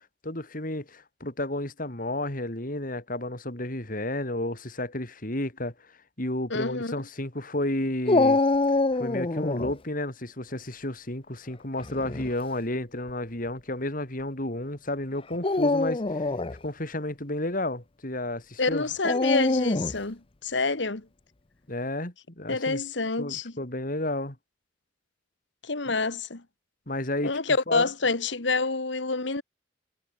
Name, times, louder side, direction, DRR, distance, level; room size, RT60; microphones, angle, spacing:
voice 1, 0.2-5.7 6.2-8.4 8.9-16.3 16.6-18.8 21.7-22.8 23.2-24.4 26.9-27.4 27.7-27.9, left 1 dB, 50° left, 4.6 m, -32 dB
voice 2, 6.5-7.0 18.6-21.1 22.5-23.5 25.6-26.4 27.2-29.4, left 3 dB, 75° left, 1.9 m, -27 dB
Dog, 8.1-9.7 11.8-12.3 13.1-13.2 15.3-16.6 19.0-20.0, left 2 dB, 30° left, 0.7 m, -24 dB
head